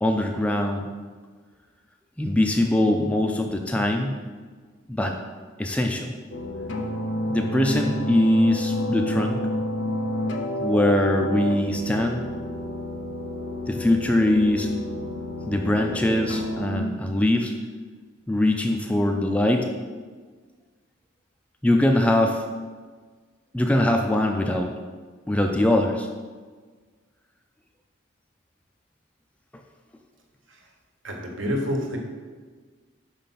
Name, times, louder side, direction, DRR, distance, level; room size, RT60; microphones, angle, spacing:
voice 1, 0.0-0.9 2.2-4.1 4.9-5.2 5.6-6.1 7.3-9.5 10.6-12.2 13.7-14.7 15.5-17.5 18.3-19.7 21.6-22.4 23.5-24.7 25.3-26.1, left 1 dB, 5° left, 3 dB, 0.3 m, -22 dB
sound 1, 6.3-16.8, equal, 60° left, 0.7 m, -29 dB
voice 2, 31.0-32.0, equal, 70° right, 1 dB, 1.1 m, -27 dB
5.3 x 4.4 x 5.7 m, 1.5 s
head